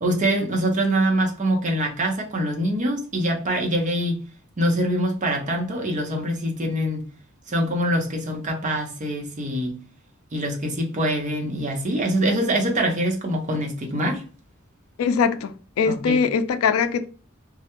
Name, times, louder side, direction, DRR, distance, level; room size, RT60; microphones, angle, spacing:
voice 1, 0.0-4.2 4.6-7.1 7.5-9.8 10.3-14.2 15.9-16.2, right 1 dB, 35° right, 0.6 m, -24 dB
voice 2, 15.0-15.5 15.8-17.1, left 6 dB, 85° left, 0.3 m, -21 dB
2.3 x 2.1 x 2.9 m
head